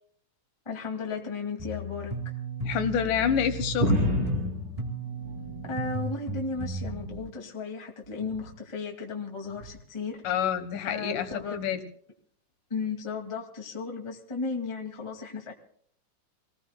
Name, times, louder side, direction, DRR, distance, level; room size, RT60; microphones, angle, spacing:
voice 1, 0.6-2.1 5.6-10.2 10.8-11.6 12.7-15.5, left 4 dB, 10° left, 1 dB, 1.6 m, -35 dB
sound 1, 1.6-6.9, right 2 dB, 15° right, 1.7 m, -35 dB
voice 2, 2.6-3.9 10.2-11.8, left 8 dB, 85° left, 8 dB, 2.9 m, -27 dB
sound 2, 3.8-6.0 6.4-7.3 8.2-8.6 9.6-9.7, left 1 dB, 50° right, 4.2 m, -30 dB
28.0 x 19.0 x 2.2 m, 0.65 s
omnidirectional pair, 3.6 m